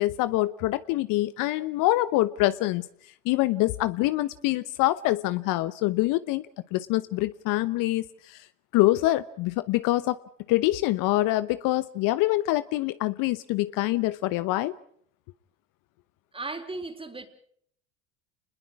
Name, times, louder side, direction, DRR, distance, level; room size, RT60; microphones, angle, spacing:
voice 1, 0.0-2.9 3.2-6.5 6.7-8.4 8.7-10.2 10.5-14.7, left 17 dB, 60° left, 15 dB, 1.0 m, -25 dB
voice 2, 16.3-17.3, right 3 dB, 15° right, 7 dB, 4.0 m, -36 dB
29.5 x 21.0 x 4.8 m, 0.63 s
hypercardioid pair, 75°, 37 cm